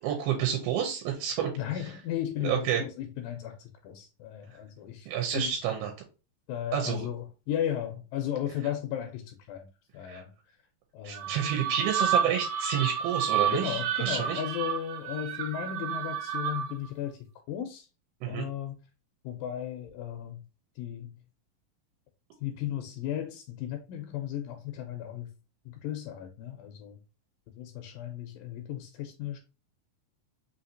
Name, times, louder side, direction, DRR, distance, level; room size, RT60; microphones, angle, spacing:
voice 1, 0.0-1.5 2.4-2.8 5.1-5.9 6.7-7.1 10.0-10.2 11.0-14.4 18.2-18.5, right 9 dB, 90° right, 2.6 m, -29 dB
voice 2, 1.6-5.1 5.3-5.5 6.5-9.7 9.9-10.3 10.9-11.3 13.5-17.2 17.5-17.9 18.3-18.8 19.2-20.4 20.8-21.1 22.4-25.3 25.7-27.0 27.6-29.4, left 10 dB, 80° left, 2.1 m, -35 dB
sound 1, 11.1-16.9, right 8 dB, 70° right, 2.5 m, -31 dB
5.6 x 2.8 x 2.6 m
omnidirectional pair, 4.3 m